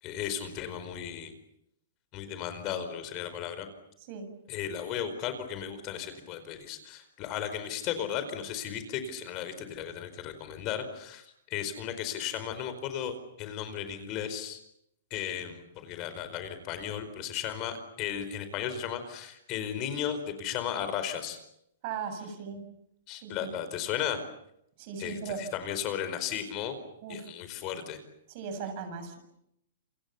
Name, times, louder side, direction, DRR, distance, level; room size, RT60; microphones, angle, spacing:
voice 1, 0.0-1.3 2.1-3.7 4.5-14.6 15.1-21.4 23.1-24.2 25.0-26.8 27.1-28.0, left 9 dB, 35° left, 10 dB, 4.7 m, -35 dB
voice 2, 21.8-22.6 23.1-23.5 24.8-25.4 27.0-27.2 28.3-29.2, right 6 dB, 45° right, 8 dB, 7.4 m, -38 dB
29.0 x 26.0 x 7.2 m, 0.78 s
hypercardioid pair, 145°, 0 cm